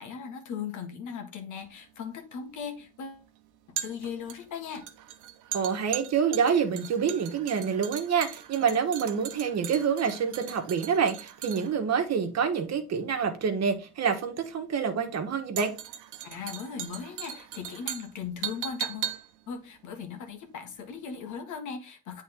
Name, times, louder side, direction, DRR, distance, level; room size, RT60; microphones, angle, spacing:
voice 1, 0.0-3.2 3.7-4.8 16.2-19.2 19.5-22.2, left 6 dB, 80° left, 1.5 m, -38 dB
sound 1, 1.6-20.9 21.1-21.3, right 11 dB, 85° right, 0.8 m, -40 dB
voice 2, 5.5-15.7, right 6 dB, 60° right, 1.3 m, -27 dB
8.0 x 3.7 x 3.7 m
cardioid pair, 90°, 30 cm